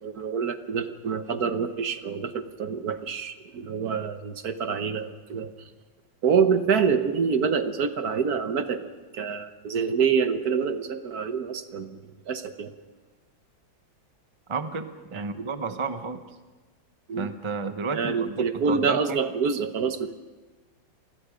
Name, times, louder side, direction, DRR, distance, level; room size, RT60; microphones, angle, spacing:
voice 1, 0.0-5.5 6.2-12.7 15.1-15.2 17.1-17.3 17.9-20.1, right 6 dB, 55° right, 9 dB, 1.5 m, -26 dB
voice 2, 14.5-16.2 17.2-19.2, right 4 dB, 25° right, 9 dB, 0.6 m, -32 dB
28.0 x 20.5 x 5.1 m, 1.2 s
omnidirectional pair, 2.1 m